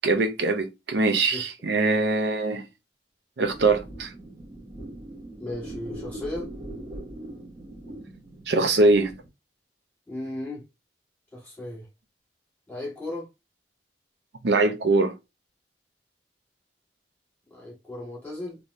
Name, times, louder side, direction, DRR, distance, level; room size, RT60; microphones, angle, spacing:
voice 1, 0.0-2.6 3.4-4.1 8.5-9.1 14.4-15.1, right 3 dB, 70° right, 0.6 m, -22 dB
sound 1, 3.4-9.3, right 1 dB, 25° right, 1.1 m, -41 dB
voice 2, 5.4-6.5 10.1-10.6 11.3-11.9 12.7-13.3 17.5-18.6, left 1 dB, 10° left, 1.6 m, -35 dB
3.4 x 2.9 x 2.6 m
head